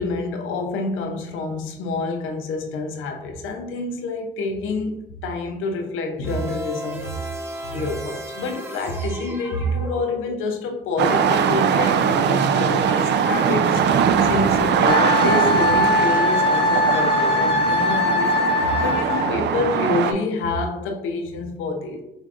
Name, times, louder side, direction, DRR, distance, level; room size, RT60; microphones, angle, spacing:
voice 1, 0.0-7.1 7.7-22.0, left 3 dB, 90° left, 0.6 m, -27 dB
sound 1, 6.2-10.6, right 1 dB, 10° right, 0.8 m, -35 dB
sound 2, 11.0-20.1, right 7 dB, 60° right, 0.4 m, -21 dB
Wind instrument woodwind instrument, 14.9-19.3, left 2 dB, 30° left, 0.6 m, -21 dB
4.3 x 3.4 x 2.4 m
cardioid pair, 90°, 20 cm